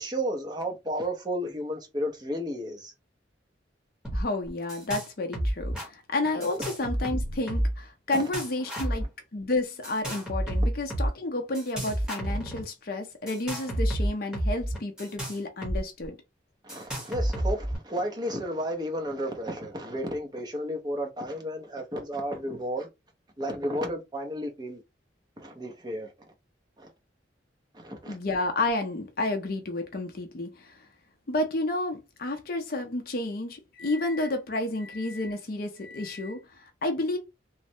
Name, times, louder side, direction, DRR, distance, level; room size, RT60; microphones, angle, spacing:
voice 1, 0.0-2.9 8.1-8.2 16.6-22.9 23.4-24.8 25.4-26.1 26.8-26.9 27.7-28.2, equal, 20° right, 0.6 m, -32 dB
sound 1, 4.0-4.2 4.5-5.1 5.3-5.9 6.4-7.8 8.1-9.0 9.8-11.1 11.5-12.6 13.3-16.1 16.7-17.8, equal, 5° right, 1.0 m, -30 dB
voice 2, 4.1-9.1 9.3-16.2 28.1-30.9 31.3-37.2, left 2 dB, 50° left, 0.5 m, -31 dB
3.1 x 2.0 x 2.7 m
head